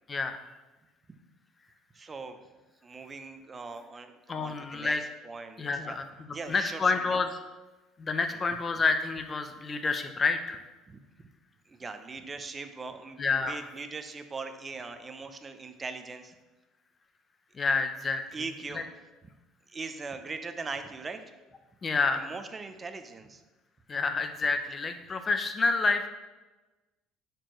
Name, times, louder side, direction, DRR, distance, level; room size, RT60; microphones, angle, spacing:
voice 1, 0.1-0.4 4.3-5.0 5.6-6.1 6.5-7.4 8.0-10.6 13.2-13.6 17.6-18.2 18.7-18.8 21.8-22.3 23.9-26.1, left 4 dB, 30° left, 8 dB, 0.6 m, -28 dB
voice 2, 1.9-2.4 2.8-6.0 6.3-7.2 8.3-8.4 10.9-11.3 11.7-13.2 13.5-16.3 18.3-18.8 19.7-21.2 22.1-23.4, right 4 dB, 25° right, 8 dB, 0.6 m, -40 dB
9.6 x 4.5 x 3.1 m, 1.2 s
cardioid pair, 110°, 0 cm